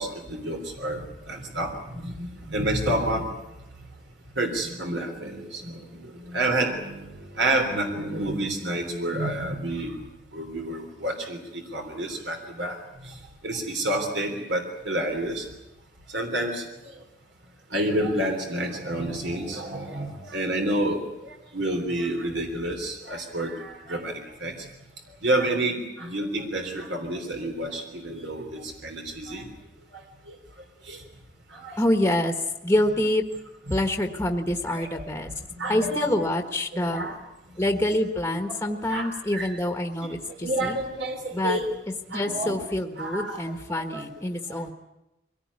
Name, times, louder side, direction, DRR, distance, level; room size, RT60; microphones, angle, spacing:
voice 1, 0.0-3.3 4.4-10.0 10.3-12.8 13.0-13.1 13.4-15.5 16.1-16.7 17.7-24.5 25.2-29.5 30.3-30.4 30.9-31.0 31.5-31.8 33.7-33.8 34.7-35.1 35.6-36.1 36.8-37.2 38.5-38.6 38.9-39.5 40.3-41.7 42.1-42.6 43.0-43.4 43.7-44.0 44.5-44.6, right 1 dB, 70° right, 3 dB, 3.5 m, -29 dB
voice 2, 31.8-32.3 32.6-33.2 33.7-35.3 35.7-37.0 37.6-40.8 41.3-41.6 42.1-44.7, left 1 dB, 15° left, 5 dB, 1.4 m, -26 dB
23.5 x 17.5 x 9.7 m, 0.95 s
head